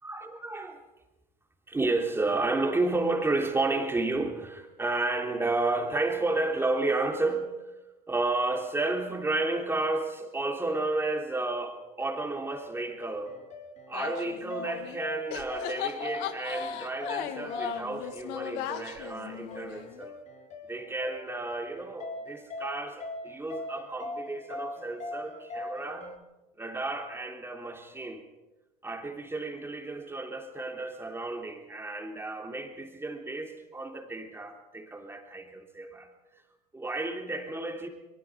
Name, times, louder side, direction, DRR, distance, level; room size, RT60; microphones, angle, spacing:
voice 1, 0.0-0.8 1.7-7.6 8.1-13.4 13.9-20.2 20.7-26.2 26.6-28.2 28.8-36.1 36.7-37.9, right 2 dB, 10° right, 4 dB, 3.2 m, -32 dB
sound 1, 12.0-26.2, left 2 dB, 35° left, 2.7 m, -41 dB
sound 2, 13.9-15.0 15.3-20.0, left 10 dB, 55° left, 1.9 m, -37 dB
25.0 x 23.5 x 4.9 m, 1.1 s
figure-of-eight pair, 75°, 21 cm